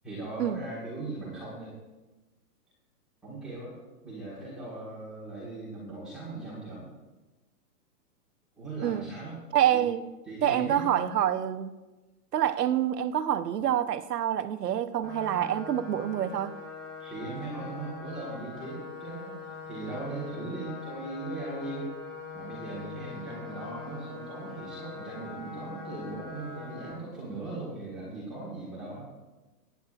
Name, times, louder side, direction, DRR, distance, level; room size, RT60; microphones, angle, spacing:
voice 1, 0.0-1.7 3.2-3.8 4.0-6.9 8.6-9.4 9.7-9.8 10.2-11.1 17.0-21.9 22.3-29.1, right 2 dB, ahead, -11 dB, 1.4 m, -39 dB
voice 2, 9.5-10.1 10.4-11.7 12.3-16.6, right 10 dB, 80° right, 10 dB, 0.9 m, -27 dB
sound 1, 15.0-26.9, left 4 dB, 15° left, 4.2 m, -42 dB
20.0 x 9.4 x 2.5 m, 1.1 s
hypercardioid pair, 175°, 47 cm